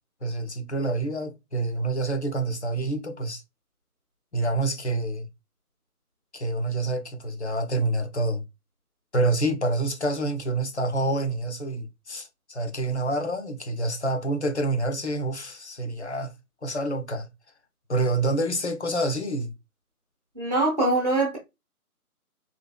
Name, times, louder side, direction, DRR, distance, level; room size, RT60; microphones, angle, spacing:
voice 1, 0.2-3.4 4.3-5.3 6.3-8.5 9.1-16.3 16.6-17.3 17.9-19.5, right 2 dB, 45° left, 0.7 m, -27 dB
voice 2, 20.3-21.4, right 2 dB, 25° right, 0.9 m, -23 dB
3.9 x 3.0 x 2.2 m
figure-of-eight pair, 160°, 46 cm